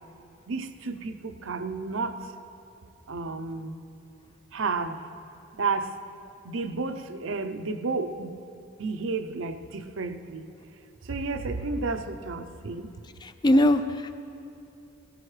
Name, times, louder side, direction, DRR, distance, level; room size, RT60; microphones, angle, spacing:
voice 1, 0.5-2.1 3.1-3.7 4.5-5.0 5.6-5.9 6.5-8.3 8.8-10.5 11.1-12.9, right 4 dB, 65° right, 8 dB, 0.6 m, -31 dB
voice 2, 13.2-14.1, left 1 dB, 20° left, 9 dB, 0.3 m, -21 dB
18.0 x 15.0 x 3.2 m, 2.7 s
head